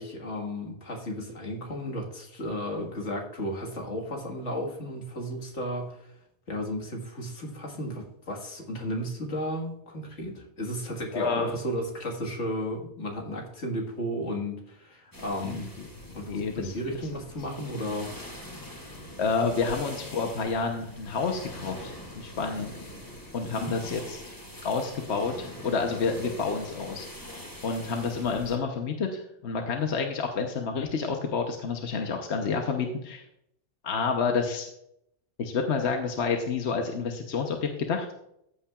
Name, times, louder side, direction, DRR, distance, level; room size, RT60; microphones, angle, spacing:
voice 1, 0.0-6.1 6.5-15.7 16.1-18.1 23.5-23.7, equal, 90° left, 1 dB, 2.1 m, -34 dB
voice 2, 11.1-11.6 15.4-15.9 16.2-16.7 19.2-22.7 23.3-24.2 24.6-27.0 27.6-33.2 33.8-34.7 35.4-38.1, left 5 dB, 70° left, 3 dB, 1.2 m, -29 dB
sound 1, 15.1-28.6, left 1 dB, 15° left, 2.2 m, -43 dB
14.0 x 8.5 x 2.4 m, 0.77 s
omnidirectional pair, 1.2 m